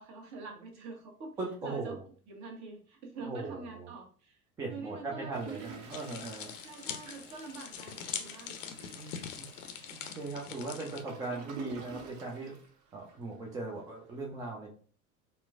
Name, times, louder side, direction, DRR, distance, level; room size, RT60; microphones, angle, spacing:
voice 1, 0.0-1.3 1.6-2.0 2.3-4.4 4.7-5.6 6.6-8.6, right 4 dB, 40° right, 2 dB, 1.1 m, -45 dB
voice 2, 1.4-2.0 3.2-3.9 4.6-6.5 9.0-9.5 9.9-12.6 12.9-14.7, right 3 dB, 10° right, -1 dB, 0.3 m, -39 dB
Toilet flush, 5.3-13.4 13.8-13.9 14.1-14.2, right 4 dB, 60° right, 0.8 m, -50 dB
sound 1, 5.9-11.0, left 8 dB, 60° left, 0.6 m, -43 dB
4.2 x 2.1 x 2.5 m, 0.41 s
figure-of-eight pair, 75°, 44 cm